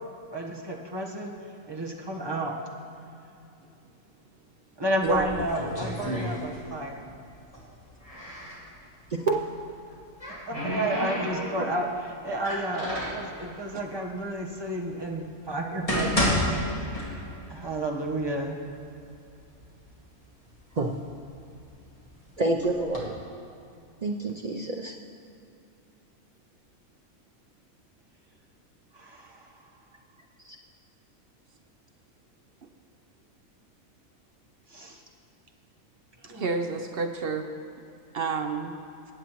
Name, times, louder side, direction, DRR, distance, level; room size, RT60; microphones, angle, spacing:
voice 1, 0.3-2.6 4.8-7.1 10.5-16.9 17.5-18.6 28.9-29.7 34.7-35.0 36.2-36.5, right 1 dB, 20° right, -1 dB, 1.0 m, -32 dB
sound 1, 5.0-6.9 7.2-8.6 9.7-11.8 12.3-13.3 14.1-14.2 14.8-14.9 15.5-17.5 17.9-18.0 18.7-18.8 19.1-19.8 20.3-22.0 22.6-23.0, left 1 dB, 25° left, 2.1 m, -31 dB
voice 2, 5.0-5.4 36.2-37.5 38.1-38.8, right 4 dB, 55° right, 5 dB, 0.7 m, -29 dB
voice 3, 22.4-23.2 24.0-24.9 30.5-30.6, right 2 dB, 85° right, 0 dB, 0.3 m, -27 dB
19.5 x 8.2 x 3.0 m, 2.7 s
omnidirectional pair, 1.5 m